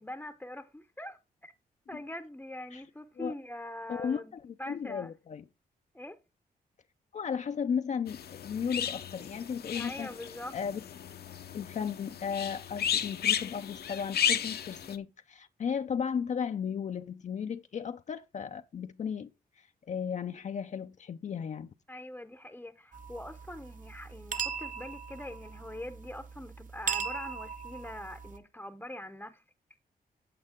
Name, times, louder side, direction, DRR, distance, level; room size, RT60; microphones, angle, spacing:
voice 1, 0.0-1.5 1.9-4.3 4.6-5.1 5.9-6.2 9.7-10.6 21.9-29.4, left 1 dB, 10° left, 0.7 m, -43 dB
voice 2, 3.9-5.5 7.1-10.1 10.5-10.8 11.5-19.3 19.6-21.7, left 7 dB, 45° left, 0.4 m, -35 dB
sound 1, 8.1-15.0, left 9 dB, 75° left, 0.8 m, -34 dB
sound 2, 22.9-28.4, right 6 dB, 55° right, 1.0 m, -39 dB
8.9 x 7.5 x 3.6 m
cardioid pair, 90°, 17 cm